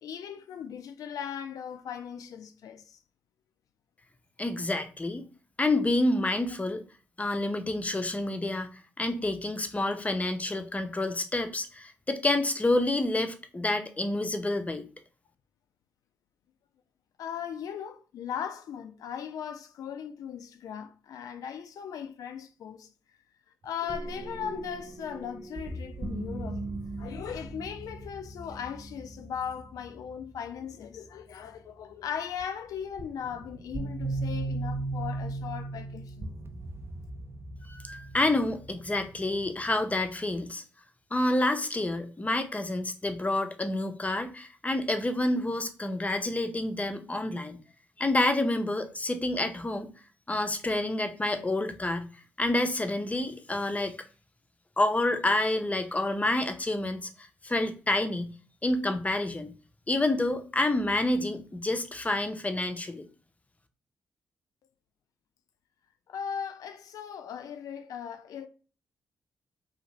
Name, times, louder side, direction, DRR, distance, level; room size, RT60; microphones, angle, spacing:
voice 1, 0.0-3.0 17.2-22.9 23.6-26.6 27.0-36.3 66.1-68.5, left 8 dB, 65° left, 0.4 m, -38 dB
voice 2, 4.4-5.2 5.6-6.8 7.2-8.7 9.0-14.8 37.6-40.6 41.1-47.6 48.0-49.9 50.3-52.1 52.4-54.0 54.8-58.3 58.6-59.5 59.9-63.1, left 2 dB, 20° left, 0.6 m, -28 dB
sound 1, 23.8-30.7 32.4-32.5 33.0-40.1, right 2 dB, 40° right, 0.5 m, -38 dB
2.6 x 2.4 x 2.9 m
hypercardioid pair, 40°, 6 cm